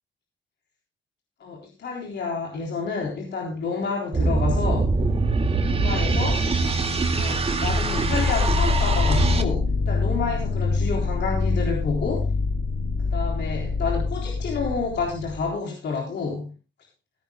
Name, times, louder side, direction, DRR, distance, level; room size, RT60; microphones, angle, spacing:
voice 1, 1.4-4.9 5.7-6.4 7.2-12.3 13.0-16.5, left 4 dB, 60° left, 0 dB, 3.6 m, -29 dB
sound 1, 4.1-9.4, right 3 dB, 30° right, 2.1 m, -23 dB
sound 2, 7.7-15.5, left 4 dB, 80° left, 2.2 m, -25 dB
16.0 x 14.5 x 2.2 m, 0.29 s
cardioid pair, 90°, 20 cm